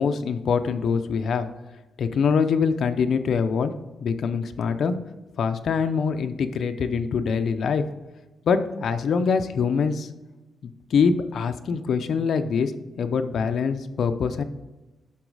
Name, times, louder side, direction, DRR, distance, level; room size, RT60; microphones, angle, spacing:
voice 1, 0.0-1.5 2.0-3.7 4.0-5.0 5.4-7.8 8.5-10.1 10.6-12.7 13.0-14.4, left 6 dB, 65° left, 8 dB, 0.6 m, -24 dB
11.5 x 3.9 x 4.8 m, 1.1 s
wide cardioid pair, 140°, 0 cm